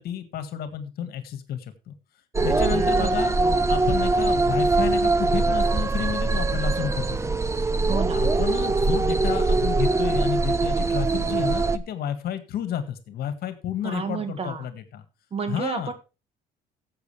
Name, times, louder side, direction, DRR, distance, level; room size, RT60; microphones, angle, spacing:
voice 1, 0.0-1.9 2.4-3.3 3.7-7.3 8.1-15.0 15.5-15.9, left 9 dB, 65° left, 10 dB, 1.9 m, -31 dB
sound 1, 2.3-11.8, right 3 dB, 15° right, 0.7 m, -22 dB
voice 2, 2.7-3.7 7.9-8.2 13.8-14.7 15.3-15.9, right 5 dB, 35° right, 9 dB, 1.8 m, -31 dB
15.0 x 7.9 x 3.3 m, 0.31 s
cardioid pair, 110°, 17 cm